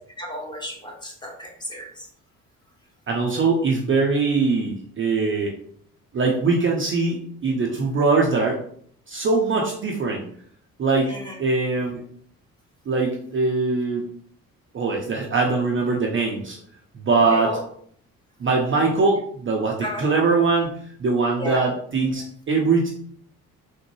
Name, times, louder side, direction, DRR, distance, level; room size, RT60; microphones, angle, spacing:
voice 1, 0.2-1.9 11.0-11.3 17.2-17.6 19.8-20.0 21.4-21.6, left 1 dB, 10° left, -1 dB, 1.0 m, -32 dB
voice 2, 3.1-5.5 6.1-8.6 9.1-10.3 10.8-11.1 11.4-12.0 12.9-14.1 14.7-16.6 16.9-17.6 18.4-22.9, right 4 dB, 30° right, -1 dB, 0.6 m, -22 dB
3.5 x 2.1 x 3.1 m, 0.62 s
hypercardioid pair, 50°, 42 cm